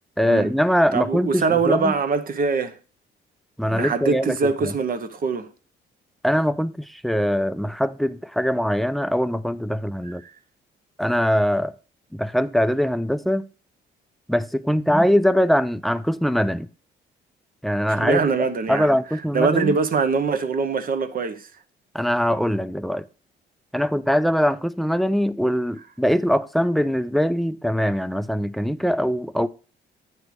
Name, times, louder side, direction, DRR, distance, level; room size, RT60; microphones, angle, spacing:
voice 1, 0.2-1.9 3.6-4.4 4.6-4.7 6.2-10.2 11.0-11.7 12.1-13.5 14.3-16.7 17.6-19.8 21.9-23.1 23.7-29.5, equal, ahead, 0.4 m, -22 dB
voice 2, 0.9-2.8 3.6-5.5 10.0-10.1 18.0-18.9 19.3-21.5, right 5 dB, 45° right, 0.8 m, -23 dB
8.3 x 3.3 x 6.0 m
cardioid pair, 90°, 20 cm